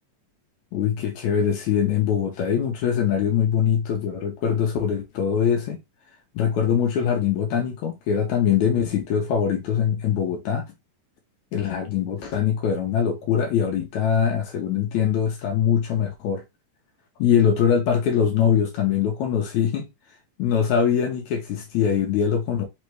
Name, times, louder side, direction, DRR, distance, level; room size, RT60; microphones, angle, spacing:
voice 1, 0.7-5.8 6.3-10.7 11.5-16.4 17.2-19.9 20.4-22.6, left 8 dB, 70° left, 2.0 m, -22 dB
5.3 x 3.2 x 3.1 m
omnidirectional pair, 4.0 m